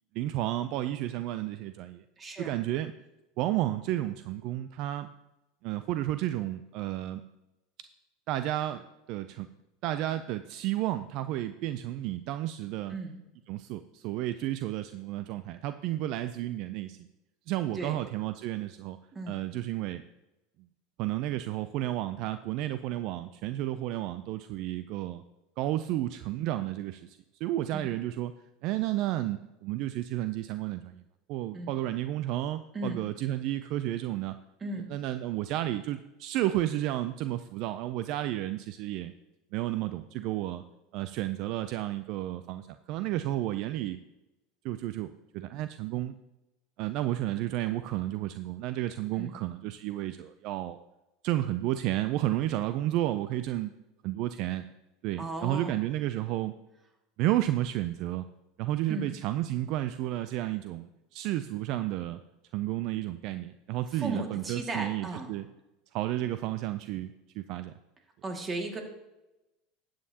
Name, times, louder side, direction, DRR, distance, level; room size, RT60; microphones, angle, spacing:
voice 1, 0.1-2.0 2.4-2.9 3.4-5.1 5.6-7.2 8.3-9.5 9.8-12.9 13.5-17.1 17.5-19.0 19.3-20.0 21.0-25.2 25.6-28.3 28.6-31.0 31.3-34.3 34.9-39.1 39.5-40.6 40.9-44.0 44.6-46.2 46.8-50.8 51.2-53.7 54.0-54.6 55.0-56.5 57.2-58.2 58.6-62.2 62.5-65.4 65.9-67.7, right 14 dB, 60° right, 11 dB, 0.4 m, -32 dB
voice 2, 2.2-2.6 12.9-13.2 17.7-18.0 19.1-19.4 27.7-27.9 31.5-31.8 32.7-33.0 34.6-34.9 49.2-49.4 55.2-55.8 58.9-59.1 63.9-65.3 68.2-68.8, right 2 dB, 25° right, 3 dB, 2.1 m, -36 dB
12.5 x 8.7 x 2.9 m, 0.95 s
hypercardioid pair, 100°, 0 cm